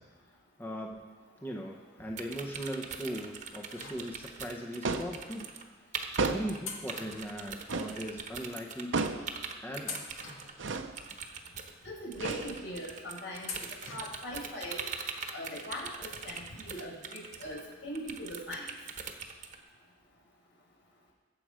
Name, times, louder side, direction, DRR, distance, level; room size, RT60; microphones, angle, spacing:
voice 1, 0.6-1.1 1.4-5.5 6.2-9.0 9.6-10.1, equal, 10° left, 1 dB, 0.8 m, -39 dB
sound 1, 2.2-5.6 5.9-6.6 6.9-19.6, right 5 dB, 40° right, 1.1 m, -42 dB
sound 2, 3.7-4.6 5.4-5.5 6.6-8.0 8.3-8.4 9.2-9.4 9.8-11.1 11.6-11.7 13.4-14.4 14.7-14.8 16.0-16.1 16.4-16.5, left 4 dB, 90° left, 2.1 m, -45 dB
sound 3, 4.8-5.2 6.2-6.7 7.7-8.0 8.9-9.3 10.6-11.0 12.1-12.8, right 3 dB, 75° right, 0.8 m, -32 dB
voice 2, 11.8-13.5 13.9-14.8 15.3-18.7, equal, 65° left, -4 dB, 5.1 m, -40 dB
22.5 x 7.6 x 5.0 m, 1.4 s
head